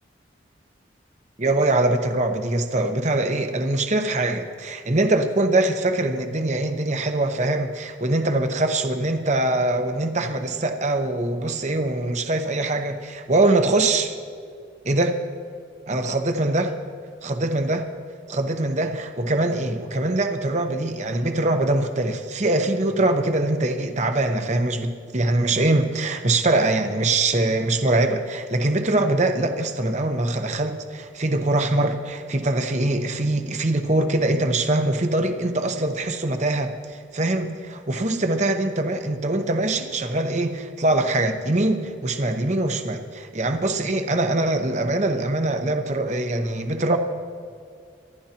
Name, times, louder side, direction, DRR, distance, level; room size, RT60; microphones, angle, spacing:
voice 1, 1.4-14.2 14.8-15.1 15.9-16.7 17.2-17.9 18.3-47.0, right 2 dB, 35° right, 6 dB, 0.9 m, -23 dB
25.0 x 12.0 x 2.9 m, 2.3 s
head